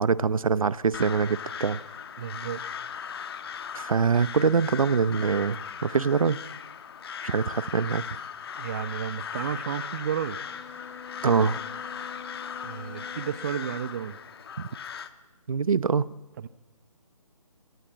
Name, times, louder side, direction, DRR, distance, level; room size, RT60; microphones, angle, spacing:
voice 1, 0.0-1.8 3.7-6.4 7.2-8.0 11.2-11.6 14.6-14.7 15.5-16.1, right 5 dB, 70° right, 18 dB, 0.7 m, -24 dB
Crow, 0.9-15.1, left 7 dB, 40° left, 1.3 m, -38 dB
voice 2, 2.2-2.6 8.6-10.4 12.6-14.2 16.4-16.5, right 9 dB, 30° right, 16 dB, 0.8 m, -32 dB
Bowed string instrument, 10.4-14.0, left 6 dB, 10° left, 3.2 m, -45 dB
25.5 x 17.5 x 8.4 m, 1.2 s
figure-of-eight pair, 150°, 19 cm